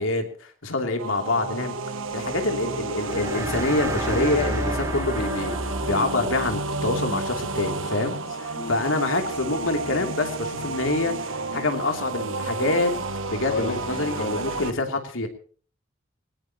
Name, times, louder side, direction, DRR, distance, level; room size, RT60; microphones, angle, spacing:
voice 1, 0.0-1.8 2.1-5.6 5.9-11.1 11.5-12.9 13.3-15.3, left 2 dB, 85° left, 4 dB, 2.9 m, -26 dB
sound 1, 1.0-14.7, right 3 dB, 80° right, 1.3 m, -31 dB
sound 2, 2.9-6.7, right 1 dB, 15° right, 2.7 m, -30 dB
voice 2, 13.5-14.6, left 2 dB, 60° left, 0 dB, 3.6 m, -33 dB
20.0 x 19.5 x 2.9 m, 0.43 s
head